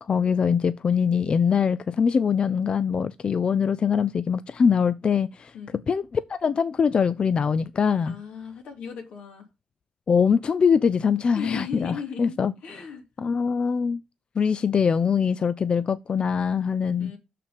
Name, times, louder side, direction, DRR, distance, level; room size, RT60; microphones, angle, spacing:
voice 1, 0.0-5.5 5.9-8.1 10.1-12.5 13.2-14.0 14.4-17.1, left 6 dB, 45° left, 0.5 m, -23 dB
voice 2, 8.0-9.5 11.3-12.4 12.6-13.0 17.0-17.2, left 6 dB, 90° left, 3.1 m, -36 dB
6.5 x 5.7 x 5.1 m
cardioid pair, 90°, 2 cm